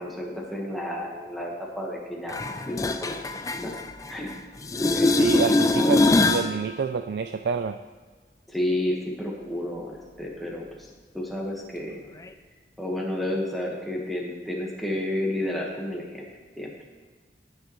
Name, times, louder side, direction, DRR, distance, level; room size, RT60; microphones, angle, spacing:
voice 1, 0.0-3.3 3.6-3.7 4.1-4.3 4.9-5.2 5.7-6.0 8.5-10.7 11.1-12.0 12.8-16.2 16.6-16.7, left 1 dB, ahead, -3 dB, 1.3 m, -31 dB
sound 1, 2.3-4.3 4.6-6.5 12.3-12.4, left 2 dB, 20° left, 0.3 m, -23 dB
voice 2, 5.2-7.8, right 5 dB, 65° right, 8 dB, 0.3 m, -28 dB
16.5 x 6.5 x 3.1 m, 1.3 s
head